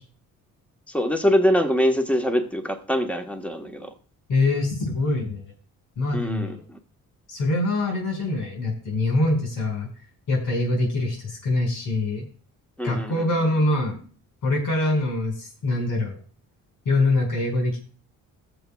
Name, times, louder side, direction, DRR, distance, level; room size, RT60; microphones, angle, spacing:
voice 1, 0.9-3.9 6.1-6.8 12.8-13.3, equal, 5° left, 5 dB, 1.3 m, -24 dB
voice 2, 4.3-5.4 6.0-6.6 7.3-9.9 10.3-12.2 12.8-14.0 14.4-16.2 16.9-17.8, left 2 dB, 75° left, -2 dB, 5.7 m, -24 dB
21.0 x 7.1 x 2.4 m, 0.40 s
cardioid pair, 115°, 33 cm